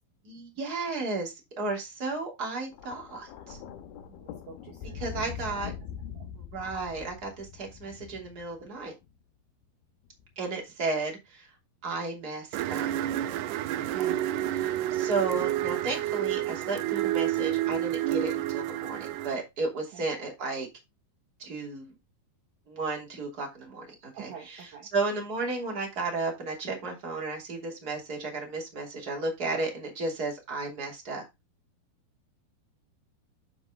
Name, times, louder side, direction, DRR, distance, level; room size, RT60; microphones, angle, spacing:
voice 1, 0.2-3.6 4.9-5.7 6.3-8.9 10.4-11.5 11.8-12.9 13.7-14.2 14.5-20.7 21.4-21.9 22.7-31.2, right 3 dB, 25° right, 3.0 m, -33 dB
Thunder, 2.7-9.1 10.1-10.3, left 8 dB, 90° left, 3.0 m, -42 dB
voice 2, 4.1-5.6 6.2-6.3 13.9-14.5 19.9-20.0 24.1-24.9, right 6 dB, 60° right, 2.6 m, -47 dB
sound 1, 12.5-19.3, right 13 dB, 80° right, 2.0 m, -29 dB
10.5 x 5.4 x 3.6 m
omnidirectional pair, 4.3 m